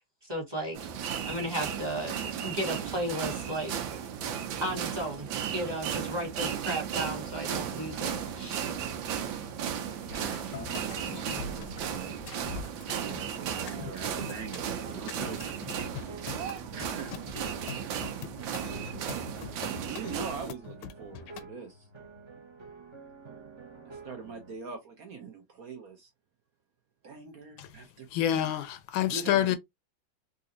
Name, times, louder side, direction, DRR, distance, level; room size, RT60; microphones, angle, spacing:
voice 1, 0.3-0.8 1.2-2.1 2.4-3.7 4.6-5.3 5.5-8.6, right 1 dB, 15° right, 1.2 m, -34 dB
sound 1, 0.7-20.5, right 8 dB, 80° right, 1.4 m, -35 dB
voice 2, 10.0-12.2 12.9-15.4 16.7-17.1 19.8-21.9 22.4-22.5 23.8-26.1 27.0-28.6 29.1-29.6, right 4 dB, 60° right, 1.0 m, -43 dB
sound 2, 10.1-21.5, left 7 dB, 75° left, 1.1 m, -43 dB
sound 3, 14.1-24.6, right 4 dB, 35° right, 0.4 m, -49 dB
voice 3, 28.1-29.6, left 11 dB, 90° left, 1.4 m, -27 dB
3.9 x 2.7 x 2.5 m
omnidirectional pair, 2.1 m